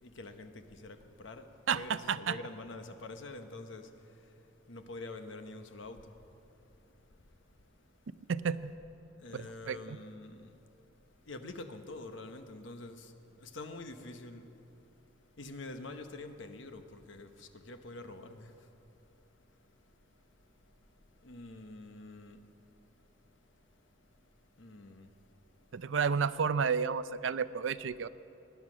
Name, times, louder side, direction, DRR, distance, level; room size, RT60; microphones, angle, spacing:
voice 1, 0.0-3.9 4.7-6.1 9.2-10.5 11.3-14.5 15.4-18.5 21.2-22.4 24.6-25.1, left 2 dB, 70° left, 1.0 m, -46 dB
voice 2, 1.7-2.4 8.3-8.7 9.3-10.0 25.7-28.1, right 6 dB, 70° right, 0.5 m, -31 dB
19.5 x 10.5 x 6.2 m
head